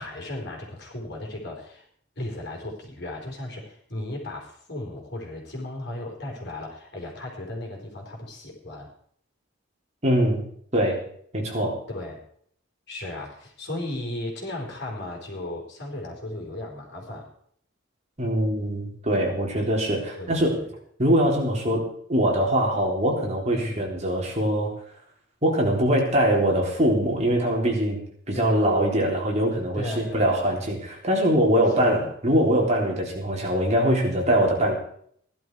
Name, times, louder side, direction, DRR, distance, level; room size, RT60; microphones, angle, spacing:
voice 1, 0.0-1.8 2.2-8.9 11.9-12.2 12.9-17.3 20.1-20.7 23.5-23.9 28.3-28.7 29.7-30.6 31.8-32.1, left 1 dB, 60° left, 0 dB, 4.6 m, -35 dB
voice 2, 10.0-10.4 10.7-11.1 11.3-11.8 18.2-20.6 21.0-24.7 25.4-34.7, equal, 35° right, -1 dB, 3.7 m, -23 dB
16.5 x 11.5 x 4.8 m, 0.64 s
head